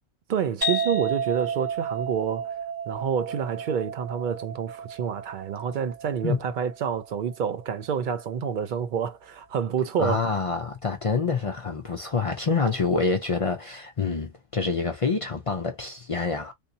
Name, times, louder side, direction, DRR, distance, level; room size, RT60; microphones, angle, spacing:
voice 1, 0.3-2.5 2.9-10.2, right 7 dB, 65° right, 0.5 m, -28 dB
sound 1, 0.6-8.0, right 4 dB, 20° right, 0.9 m, -32 dB
voice 2, 10.0-16.5, left 4 dB, 50° left, 0.4 m, -27 dB
3.6 x 2.7 x 2.6 m
omnidirectional pair, 1.3 m